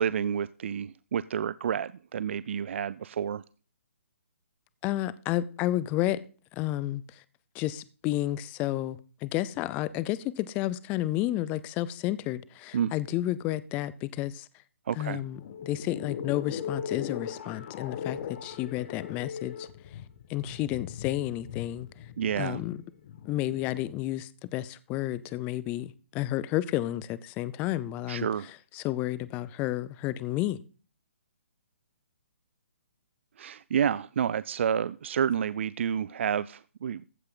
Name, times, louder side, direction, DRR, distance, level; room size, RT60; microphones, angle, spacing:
voice 1, 0.0-3.4 12.7-12.9 14.9-15.2 22.2-22.6 28.1-28.5 33.4-37.0, right 8 dB, 60° right, 0.4 m, -29 dB
voice 2, 4.8-6.2 6.5-7.2 7.5-14.5 15.0-19.7 20.3-21.9 22.4-22.8 23.3-28.3 28.7-30.6, left 15 dB, 20° left, 0.5 m, -31 dB
sound 1, 15.2-24.0, left 8 dB, 45° left, 1.3 m, -39 dB
15.0 x 5.5 x 3.8 m
hypercardioid pair, 150°, 7 cm